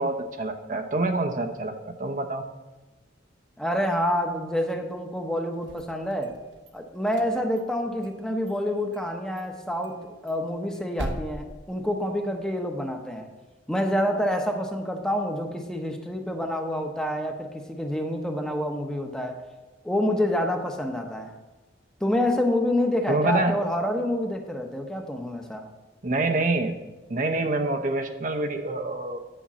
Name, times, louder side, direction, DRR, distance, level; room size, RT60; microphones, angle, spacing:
voice 1, 0.0-1.7 2.0-2.4 23.1-23.5 26.0-26.7 27.1-29.2, right 2 dB, 45° right, 4 dB, 0.8 m, -26 dB
voice 2, 3.6-6.3 6.7-10.0 10.2-13.3 13.7-19.4 19.8-21.3 22.0-25.7, left 1 dB, 5° left, 3 dB, 0.9 m, -27 dB
sound 1, 5.5-6.7 7.1-8.2 8.5-8.6 8.9-9.1 9.4-9.5 9.8-12.4, right 1 dB, 80° right, 1.1 m, -39 dB
10.0 x 5.3 x 7.3 m, 1.2 s
head